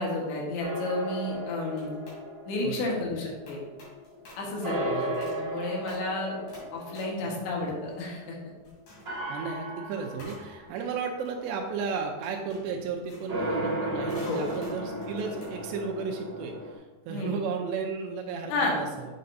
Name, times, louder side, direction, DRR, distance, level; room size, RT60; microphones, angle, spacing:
voice 1, 0.0-1.9 2.5-3.6 4.4-6.4 6.7-8.4 14.3-14.4 17.1-17.3 18.5-18.8, left 2 dB, 85° left, -2 dB, 3.8 m, -31 dB
sound 1, 0.6-4.2 4.6-8.4 9.0-10.9 13.3-16.7, right 1 dB, 65° right, 0.8 m, -35 dB
sound 2, 1.7-2.3 3.5-4.6 4.9-5.5 5.9-6.2 6.5-8.4 8.6-9.2 10.2-15.8, left 1 dB, 50° left, 3.8 m, -51 dB
voice 2, 4.9-5.3 7.2-7.4 9.3-19.1, right 5 dB, 85° right, 2 dB, 2.8 m, -34 dB
7.8 x 7.5 x 2.7 m, 1.2 s
omnidirectional pair, 5.0 m